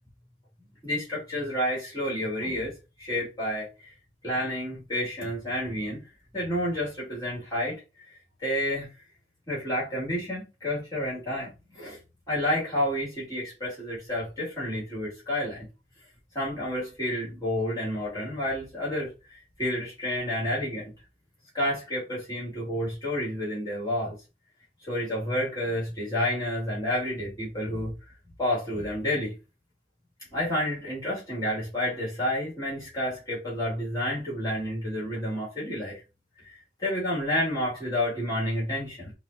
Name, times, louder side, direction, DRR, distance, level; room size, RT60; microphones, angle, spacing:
voice 1, 0.8-3.9 4.2-6.0 6.3-8.9 9.5-12.0 12.3-15.6 16.3-20.9 21.5-24.1 24.8-27.9 28.4-29.3 30.3-36.0 36.4-39.1, left 1 dB, 20° left, 1.6 m, -30 dB
4.8 x 2.0 x 2.5 m
head